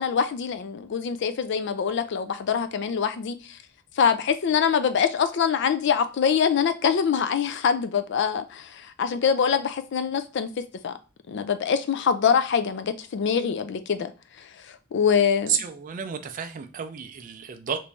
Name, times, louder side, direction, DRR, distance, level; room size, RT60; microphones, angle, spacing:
voice 1, 0.0-3.6 4.0-10.5 10.8-10.9 11.3-14.1 14.9-15.6, left 7 dB, 60° left, 0.4 m, -24 dB
voice 2, 15.5-17.8, right 8 dB, 40° right, 0.4 m, -31 dB
3.0 x 2.6 x 3.3 m
head